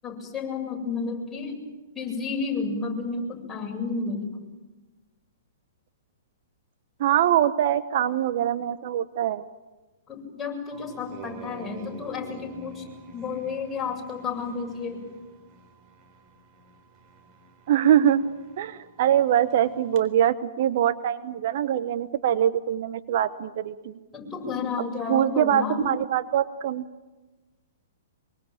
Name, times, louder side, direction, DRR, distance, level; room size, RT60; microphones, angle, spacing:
voice 1, 0.0-1.6 1.9-4.4 10.1-12.8 13.1-15.0 24.1-25.9, left 4 dB, 15° left, 0 dB, 7.7 m, -31 dB
voice 2, 7.0-9.4 17.7-18.3 18.6-23.9 25.1-26.8, right 10 dB, 55° right, 13 dB, 1.1 m, -23 dB
sound 1, 10.7-20.0, right 4 dB, 35° right, 3.9 m, -48 dB
25.0 x 24.0 x 9.0 m, 1.2 s
hypercardioid pair, 120°, 0 cm